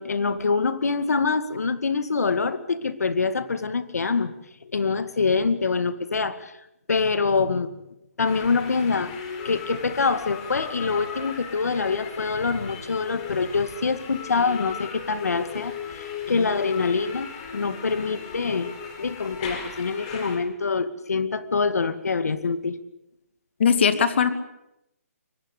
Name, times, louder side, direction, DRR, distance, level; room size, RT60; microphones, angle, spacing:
voice 1, 0.0-4.3 4.6-6.5 6.9-7.7 8.2-9.2 9.4-22.8, left 4 dB, 80° left, 12 dB, 2.3 m, -25 dB
sound 1, 8.2-20.4, left 6 dB, 25° left, 4.7 m, -37 dB
voice 2, 23.6-24.3, left 7 dB, 45° left, 11 dB, 2.4 m, -19 dB
23.0 x 20.0 x 8.4 m, 0.84 s
hypercardioid pair, 170°, 8 cm